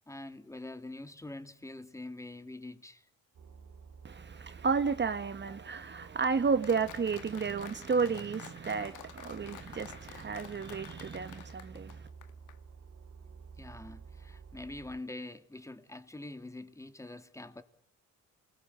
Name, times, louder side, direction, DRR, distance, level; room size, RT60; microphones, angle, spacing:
voice 1, 0.1-3.0 13.6-17.6, left 2 dB, 10° left, 2.5 m, -45 dB
sound 1, 3.3-15.0, right 5 dB, 60° right, 3.1 m, -52 dB
voice 2, 4.0-12.1, right 5 dB, 35° right, 1.6 m, -32 dB
Applause, 6.6-12.6, left 11 dB, 85° left, 1.9 m, -50 dB
28.5 x 21.0 x 9.9 m
cardioid pair, 90°, 30 cm